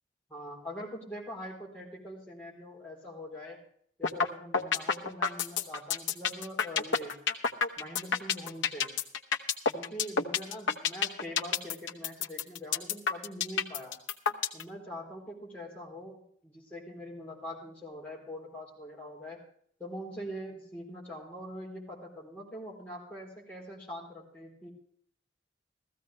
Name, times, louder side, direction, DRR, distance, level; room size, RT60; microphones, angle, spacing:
voice 1, 0.3-3.6 4.0-7.2 7.8-9.0 9.7-14.0 14.5-19.4 19.8-24.7, equal, 10° left, -4 dB, 3.7 m, -43 dB
sound 1, 4.0-4.3 4.5-14.6, left 6 dB, 80° left, 0.9 m, -28 dB
15.5 x 14.5 x 3.3 m, 0.62 s
head